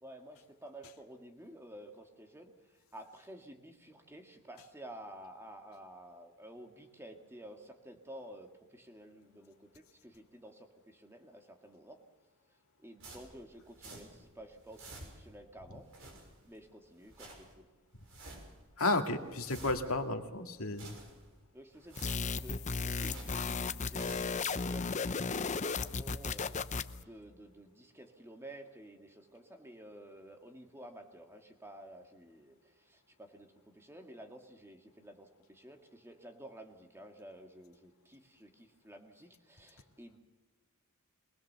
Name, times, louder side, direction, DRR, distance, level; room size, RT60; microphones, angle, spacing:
voice 1, 0.0-12.0 12.8-15.9 16.4-17.7 21.5-40.2, right 1 dB, 10° right, 4 dB, 2.3 m, -52 dB
sound 1, 13.0-14.3 14.5-15.4 15.8-16.6 16.9-17.5 17.9-18.6 19.0-20.1 20.5-21.4 21.7-23.5 23.8-24.4, right 2 dB, 70° right, 6.4 m, -51 dB
voice 2, 18.8-21.0, left 2 dB, 85° left, 4 dB, 2.0 m, -32 dB
sound 2, 22.0-27.0, left 4 dB, 35° left, 0.7 m, -35 dB
24.0 x 19.5 x 6.9 m, 1.3 s
head